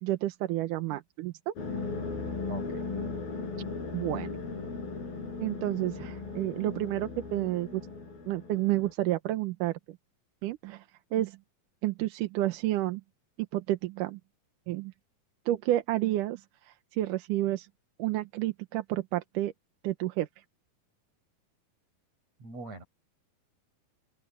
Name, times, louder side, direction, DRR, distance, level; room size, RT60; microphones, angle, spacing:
voice 1, 0.0-1.5 3.6-3.7 3.9-4.4 5.4-7.8 8.3-10.0 10.4-10.9 11.1-11.4 11.8-13.0 13.5-14.2 14.7-14.9 15.5-17.7 18.0-19.5 19.8-20.3, right 15 dB, 75° right, 2.2 m, -30 dB
sound 1, 1.6-8.9, left 4 dB, 80° left, 7.5 m, -37 dB
voice 2, 2.5-2.8 22.4-22.8, right 3 dB, 45° right, 7.6 m, -42 dB
open air
omnidirectional pair, 4.2 m